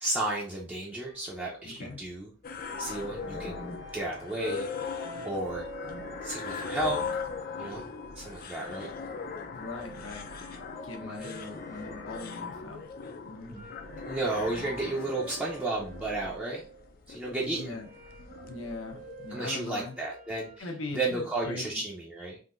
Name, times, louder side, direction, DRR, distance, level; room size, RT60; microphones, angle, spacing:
voice 1, 0.0-2.3 2.8-3.7 3.9-4.7 5.2-5.7 6.2-7.0 7.6-7.8 8.2-8.9 11.0-11.4 13.5-13.7 14.0-16.6 17.1-17.8 19.3-20.7 20.9-22.4, right 2 dB, 10° right, -5 dB, 0.5 m, -33 dB
sound 1, 1.0-20.6, right 3 dB, 35° right, 0.9 m, -50 dB
voice 2, 1.6-2.0 9.4-10.4 10.8-12.9 13.2-13.5 17.4-17.9 18.4-19.9 20.6-21.7, left 3 dB, 80° left, 1 dB, 0.9 m, -40 dB
sound 2, 2.4-19.4, left 5 dB, 50° left, 0.4 m, -39 dB
3.7 x 2.6 x 2.5 m, 0.38 s
head